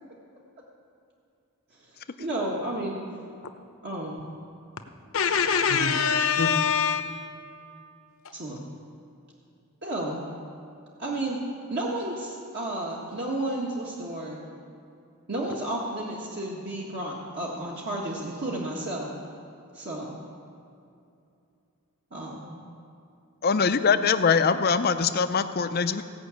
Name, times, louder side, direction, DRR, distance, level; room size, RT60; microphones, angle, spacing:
voice 1, 2.2-3.0 3.8-4.3 8.3-8.6 9.8-10.2 11.0-11.4 11.7-14.4 15.3-19.1 19.7-20.2 22.1-22.6, right 1 dB, 50° right, -4 dB, 1.5 m, -32 dB
voice 2, 5.1-7.2, left 6 dB, 65° left, 7 dB, 0.9 m, -23 dB
voice 3, 23.4-26.0, left 5 dB, 45° left, 10 dB, 0.5 m, -22 dB
17.0 x 6.0 x 8.3 m, 2.6 s
head